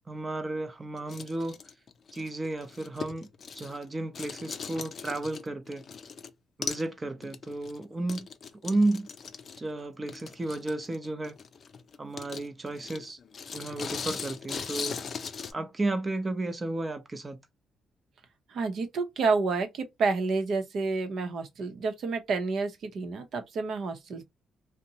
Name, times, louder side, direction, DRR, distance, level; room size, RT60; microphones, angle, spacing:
voice 1, 0.1-1.6 2.1-3.3 3.5-5.8 6.6-8.3 8.6-9.1 9.6-11.4 12.0-13.2 13.5-15.0 15.5-17.4, right 2 dB, 25° right, 0.7 m, -32 dB
sound 1, 1.0-3.9 4.1-6.3 6.6-6.9 7.2-15.5, left 6 dB, 50° left, 0.4 m, -39 dB
voice 2, 18.5-24.2, right 4 dB, 65° right, 0.8 m, -29 dB
2.6 x 2.1 x 2.7 m
cardioid pair, 90°, 0 cm